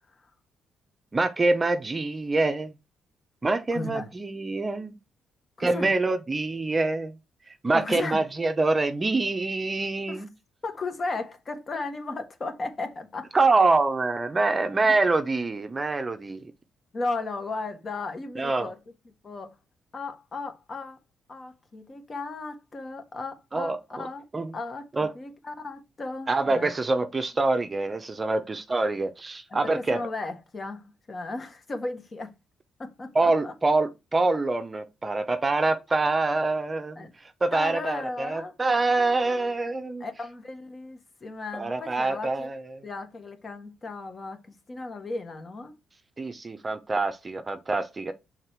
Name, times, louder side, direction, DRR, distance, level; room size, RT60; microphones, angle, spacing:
voice 1, 1.1-2.7 3.4-5.0 5.6-7.1 7.6-10.3 13.3-16.4 18.4-18.7 23.5-24.1 24.3-24.5 24.9-25.1 26.3-30.0 33.1-40.0 41.5-42.8 46.2-48.1, right 3 dB, 25° right, 0.7 m, -25 dB
voice 2, 3.7-4.1 5.6-5.9 7.7-8.2 10.1-10.2 10.6-13.3 14.8-15.0 16.9-18.7 19.2-19.5 19.9-21.0 21.3-24.2 24.5-26.7 29.5-32.3 32.8-33.5 36.9-37.1 37.5-38.5 39.0-39.5 40.0-42.5 42.8-44.4 44.7-45.7, left 3 dB, 35° left, 1.5 m, -35 dB
6.4 x 3.9 x 4.5 m
cardioid pair, 90°, 0 cm